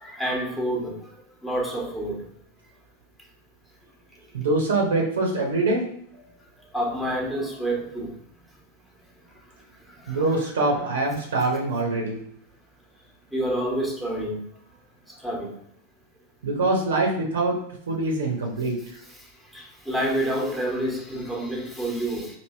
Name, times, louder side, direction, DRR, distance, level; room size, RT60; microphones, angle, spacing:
voice 1, 0.0-0.9 1.4-2.2 6.7-8.1 10.4-10.5 13.3-14.4 15.2-15.5 19.5-22.3, right 1 dB, 5° left, -2 dB, 1.1 m, -28 dB
voice 2, 4.3-5.8 10.1-12.2 16.4-17.6 17.9-18.8, right 2 dB, 65° right, 1 dB, 0.9 m, -24 dB
3.2 x 2.9 x 4.1 m, 0.70 s
figure-of-eight pair, 90°, 0 cm